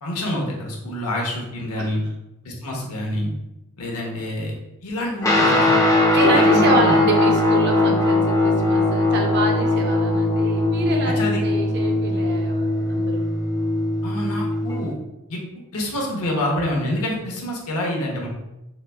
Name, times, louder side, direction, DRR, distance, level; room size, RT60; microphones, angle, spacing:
voice 1, 0.0-2.0 2.4-3.3 3.8-4.6 4.8-5.8 6.1-6.9 11.0-11.4 14.0-15.0 15.3-15.4 15.7-18.3, left 1 dB, 70° left, -1 dB, 0.8 m, -26 dB
Guitar, 5.2-14.9, left 2 dB, 15° left, 0.4 m, -20 dB
voice 2, 6.1-13.2, right 2 dB, 50° right, 1 dB, 0.5 m, -26 dB
4.0 x 2.4 x 2.3 m, 0.92 s
head